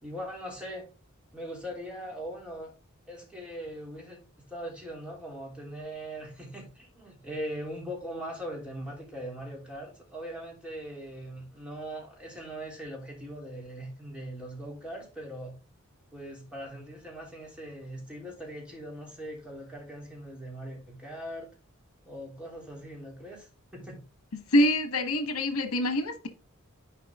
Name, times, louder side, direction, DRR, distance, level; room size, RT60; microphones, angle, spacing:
voice 1, 0.0-0.9 1.3-2.7 3.1-4.2 4.5-15.5 16.1-21.5 22.0-24.0, equal, 5° right, 3.1 m, -40 dB
voice 2, 24.5-26.3, left 1 dB, 80° left, 1.3 m, -25 dB
11.0 x 4.7 x 3.6 m
head